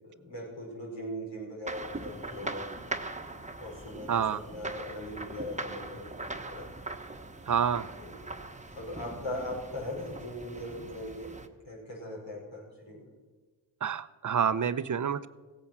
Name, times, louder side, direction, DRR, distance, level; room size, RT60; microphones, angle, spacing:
voice 1, 0.0-2.7 3.6-6.1 6.5-6.7 8.0-8.2 8.7-11.4 11.6-13.0, left 1 dB, 80° left, -4 dB, 5.5 m, -39 dB
sound 1, 1.7-11.5, right 2 dB, 15° right, 1.2 m, -41 dB
voice 2, 4.1-4.4 7.5-7.9 13.8-15.3, right 8 dB, 40° right, 15 dB, 0.7 m, -28 dB
16.0 x 8.8 x 6.1 m, 1.4 s
supercardioid pair, 45°, 45 cm